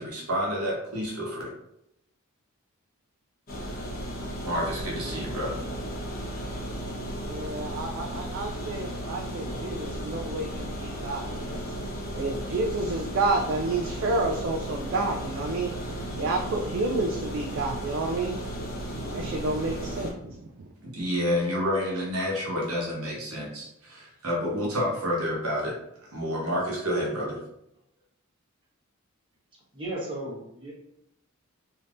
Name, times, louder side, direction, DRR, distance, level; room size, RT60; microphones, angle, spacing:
voice 1, 0.0-1.5 4.4-5.6 20.8-25.8 26.1-27.4, equal, 85° right, -3 dB, 1.0 m, -29 dB
sound 1, 3.5-20.1, equal, 45° left, 1.0 m, -35 dB
voice 2, 7.2-11.6 12.1-15.7 16.1-18.4 19.0-20.3, right 2 dB, 55° right, 2 dB, 0.3 m, -30 dB
voice 3, 9.0-9.6 29.7-30.7, right 1 dB, 25° right, -6 dB, 1.1 m, -37 dB
3.4 x 2.7 x 2.5 m, 0.79 s
head